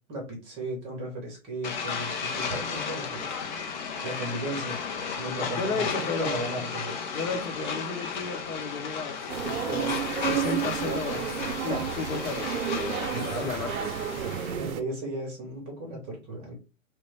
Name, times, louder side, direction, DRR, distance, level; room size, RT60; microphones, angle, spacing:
voice 1, 0.1-3.3 4.0-4.8 5.1-6.9 11.4-11.8 13.1-13.5 14.6-16.5, right 1 dB, 15° right, 0.6 m, -35 dB
sound 1, 1.6-14.7, left 6 dB, 35° left, 0.5 m, -34 dB
voice 2, 5.6-6.4 7.1-11.3 11.6-13.9, left 4 dB, 75° left, 0.9 m, -34 dB
sound 2, 9.3-14.8, right 9 dB, 90° right, 0.5 m, -31 dB
3.2 x 2.2 x 3.1 m
hypercardioid pair, 140°, 41 cm